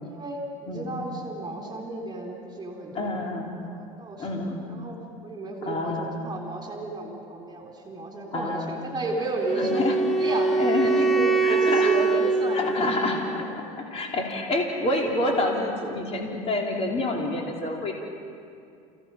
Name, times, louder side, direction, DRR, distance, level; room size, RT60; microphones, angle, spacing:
voice 1, 0.0-3.2 3.6-9.8 10.2-10.5 10.8-12.9 13.2-13.3 13.7-13.8, right 2 dB, 25° right, 0 dB, 3.6 m, -33 dB
voice 2, 0.7-1.0 2.9-3.5 4.2-4.6 5.6-6.2 8.3-8.7 9.6-9.9 10.6-11.0 11.4-11.9 12.5-13.4 13.9-17.9, left 2 dB, 35° left, 0 dB, 3.2 m, -27 dB
Wind instrument woodwind instrument, 9.4-13.6, right 3 dB, ahead, 1.3 m, -23 dB
30.0 x 16.5 x 5.7 m, 2.4 s
supercardioid pair, 100°, 18 cm